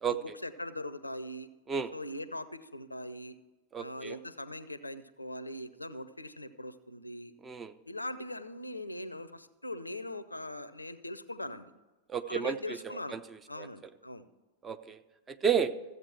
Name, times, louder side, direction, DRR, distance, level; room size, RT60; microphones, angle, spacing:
voice 1, 0.1-1.5 1.9-3.4 3.8-7.3 7.9-11.7 12.2-13.2 13.5-14.3, left 1 dB, 85° left, 14 dB, 0.6 m, -41 dB
voice 2, 3.7-4.2 7.4-7.7 12.1-13.2 13.6-13.7 14.6-15.0 15.3-15.7, right 7 dB, 20° right, 11 dB, 0.6 m, -32 dB
14.5 x 8.1 x 4.4 m, 1.2 s
figure-of-eight pair, 90°, 0 cm